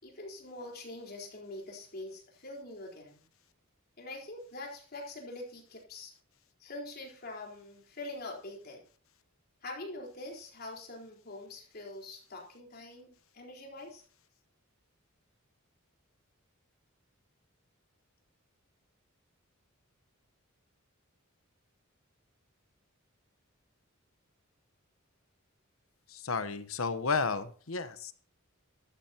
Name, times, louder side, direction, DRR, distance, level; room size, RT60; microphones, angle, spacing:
voice 1, 0.0-3.2 4.0-6.1 6.6-8.8 9.6-14.0, left 2 dB, 45° left, 0 dB, 4.1 m, -44 dB
voice 2, 26.1-28.1, left 4 dB, 70° left, 11 dB, 1.0 m, -32 dB
13.5 x 12.5 x 2.9 m, 0.42 s
head